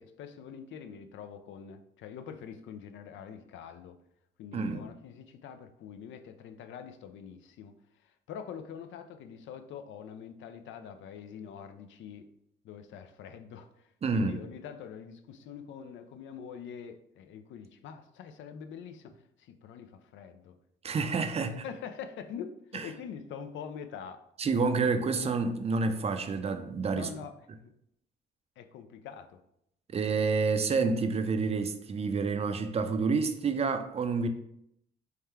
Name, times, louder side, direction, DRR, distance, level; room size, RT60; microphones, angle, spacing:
voice 1, 0.0-4.0 4.4-7.7 8.0-12.3 12.6-20.6 21.6-24.2 26.9-27.7 28.6-29.4, left 7 dB, 75° left, 0.4 m, -44 dB
voice 2, 4.5-4.8 14.0-14.4 20.8-21.6 22.7-22.8 24.4-27.1 29.9-34.3, right 4 dB, 30° right, 0.4 m, -28 dB
3.6 x 2.2 x 4.4 m
cardioid pair, 90°, 20 cm